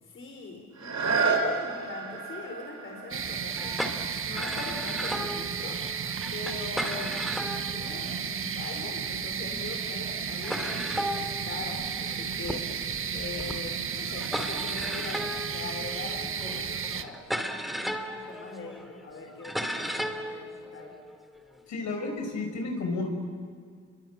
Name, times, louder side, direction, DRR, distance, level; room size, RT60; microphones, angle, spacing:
voice 1, 0.0-5.8 6.3-7.2 7.7-12.7 13.1-17.2 17.6-20.9, left 3 dB, 45° left, 1 dB, 4.8 m, -42 dB
sound 1, 0.7-6.4 7.0-7.1, right 4 dB, 65° right, 5.6 m, -32 dB
sound 2, 3.1-17.0, right 7 dB, 45° right, 1.4 m, -33 dB
sound 3, 3.6-8.9 9.6-9.7 9.9-10.0 10.4-21.6, equal, ahead, 2.8 m, -36 dB
voice 2, 21.7-23.1, left 3 dB, 65° left, 3 dB, 6.6 m, -32 dB
28.0 x 23.0 x 9.0 m, 2.1 s
cardioid pair, 90°, 30 cm